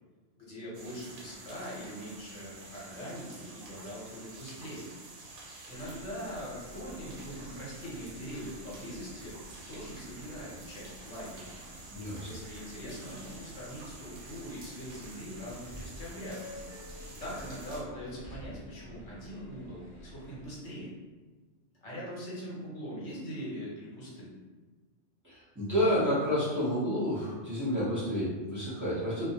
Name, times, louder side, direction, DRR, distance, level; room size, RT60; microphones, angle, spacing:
voice 1, 0.4-4.9 5.7-9.3 9.7-11.4 12.2-16.6 17.2-20.9 21.8-24.4, equal, 70° left, -6 dB, 1.1 m, -42 dB
sound 1, 0.7-17.8, right 2 dB, 75° right, 1.0 m, -49 dB
sound 2, 5.7-20.5, equal, 45° left, 0.4 m, -49 dB
voice 2, 11.9-12.3 25.2-29.3, equal, 15° right, -12 dB, 0.9 m, -30 dB
2.3 x 2.1 x 2.7 m, 1.3 s
omnidirectional pair, 1.3 m